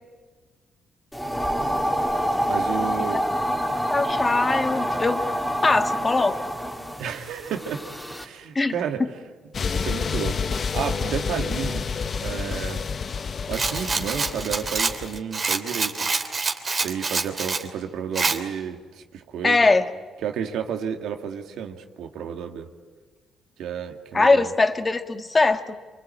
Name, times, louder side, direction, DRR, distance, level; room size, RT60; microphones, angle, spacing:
sound 1, 1.1-8.2, equal, 5° left, 3.3 m, -27 dB
voice 1, 2.5-3.2 7.0-7.9 8.2-9.1 9.7-11.9 12.2-12.8 13.5-16.1 16.8-19.7 20.2-22.7 23.6-24.5, right 8 dB, 80° right, 5 dB, 2.3 m, -31 dB
voice 2, 3.9-5.2 5.6-6.4 8.5-8.7 19.4-19.8 24.1-25.8, left 3 dB, 25° left, 7 dB, 1.8 m, -21 dB
sound 2, 9.5-15.2, left 5 dB, 45° left, 1.0 m, -29 dB
Rattle, 13.5-17.7 18.1-18.4, right 4 dB, 35° right, 3.0 m, -26 dB
28.0 x 24.5 x 8.7 m, 1.4 s
cardioid pair, 90°, 0 cm